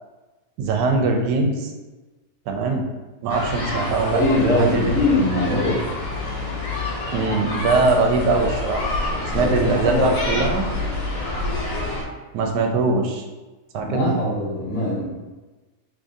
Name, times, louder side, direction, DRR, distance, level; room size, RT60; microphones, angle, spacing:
voice 1, 0.6-1.7 2.5-2.8 3.2-5.0 7.1-9.0 9.3-10.7 12.3-13.2 13.7-14.2, right 3 dB, 80° right, 3 dB, 1.2 m, -22 dB
sound 1, 3.3-12.0, left 2 dB, 70° left, 1.2 m, -27 dB
voice 2, 4.1-5.9 9.2-10.4 13.8-15.1, left 1 dB, 50° left, -8 dB, 1.5 m, -22 dB
3.6 x 3.1 x 2.6 m, 1.2 s
omnidirectional pair, 1.8 m